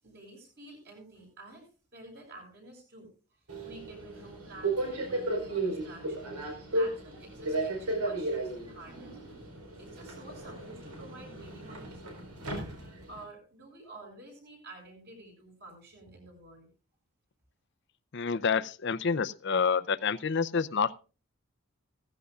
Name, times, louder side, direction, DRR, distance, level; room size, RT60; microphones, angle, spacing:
voice 1, 0.0-12.3 13.1-16.7, right 2 dB, 45° right, 1 dB, 6.5 m, -50 dB
Subway metro underground, 3.5-13.2, right 2 dB, 85° right, 4.4 m, -35 dB
voice 2, 18.1-21.0, left 5 dB, 50° left, 15 dB, 0.6 m, -28 dB
16.0 x 15.0 x 2.4 m, 0.34 s
head